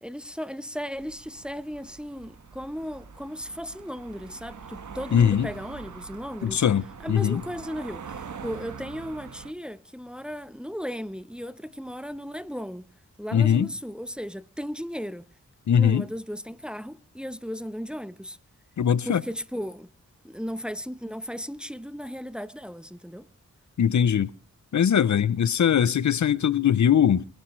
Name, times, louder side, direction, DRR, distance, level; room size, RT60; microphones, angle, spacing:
voice 1, 0.0-6.6 7.0-12.9 13.2-15.3 15.7-18.4 19.1-19.9 20.2-23.3, equal, 5° right, 0.9 m, -36 dB
sound 1, 0.9-9.5, right 6 dB, 70° right, 1.5 m, -43 dB
voice 2, 5.1-5.5 6.4-7.4 13.3-13.7 15.7-16.0 18.8-19.2 23.8-24.3 24.7-27.3, left 8 dB, 65° left, 0.7 m, -21 dB
25.0 x 11.5 x 3.2 m
cardioid pair, 55°, 31 cm